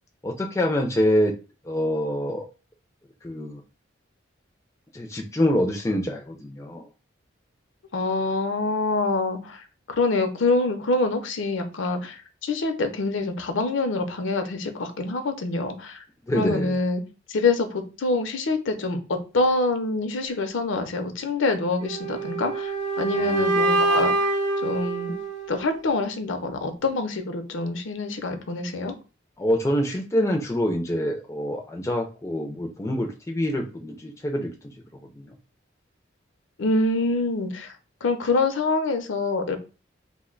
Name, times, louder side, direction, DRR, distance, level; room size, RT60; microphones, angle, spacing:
voice 1, 0.2-1.4 1.6-2.5 3.2-3.6 4.9-6.9 16.3-16.8 23.1-23.5 29.4-34.7 35.2-35.3, equal, 15° left, 0.3 m, -26 dB
voice 2, 7.9-9.6 9.9-12.2 12.4-16.0 16.3-17.0 17.3-22.7 23.0-24.3 24.6-25.1 25.5-28.9 36.6-37.7 38.0-39.6, left 3 dB, 75° left, 0.5 m, -25 dB
sound 1, 21.8-25.8, right 2 dB, 80° right, 0.7 m, -25 dB
2.6 x 2.1 x 3.7 m
head